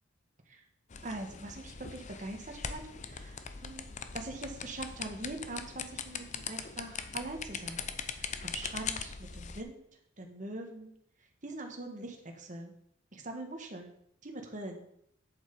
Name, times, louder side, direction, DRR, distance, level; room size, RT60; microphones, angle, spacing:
sound 1, 0.9-9.6, left 6 dB, 40° left, 0.6 m, -41 dB
voice 1, 1.0-2.8 3.1-3.9 4.1-7.9 8.2-9.8 10.2-10.9 11.4-12.7 13.1-13.9 14.2-14.9, right 2 dB, 40° right, 3 dB, 1.5 m, -42 dB
8.1 x 7.3 x 5.2 m, 0.71 s
head